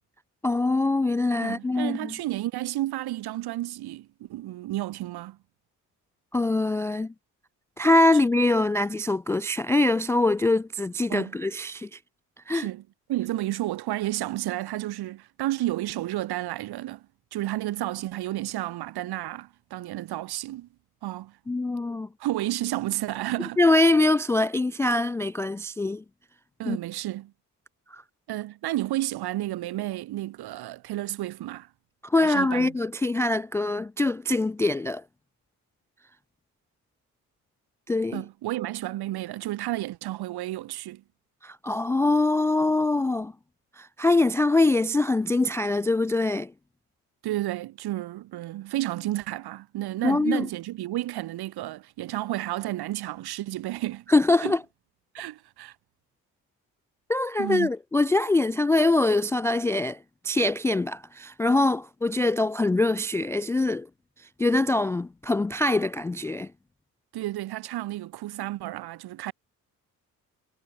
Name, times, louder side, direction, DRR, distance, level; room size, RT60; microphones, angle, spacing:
voice 1, 0.4-2.1 6.3-7.1 7.8-12.0 12.5-12.7 21.5-22.1 23.6-26.0 26.7-26.8 27.9-28.0 32.0-35.0 37.9-38.2 41.4-43.3 43.8-46.5 50.0-50.5 54.1-54.6 57.1-60.0 60.2-63.9 64.4-66.5, left 2 dB, 5° left, 0.3 m, -23 dB
voice 2, 1.4-5.4 11.1-11.4 12.5-12.8 13.1-17.1 17.3-20.7 21.0-21.4 22.2-23.6 26.6-27.3 28.3-31.7 32.2-32.7 38.1-41.0 47.2-54.0 54.4-54.5 55.1-55.7 57.4-57.7 67.1-69.3, right 15 dB, 55° right, 2.7 m, -31 dB
figure-of-eight pair, 45°, 45 cm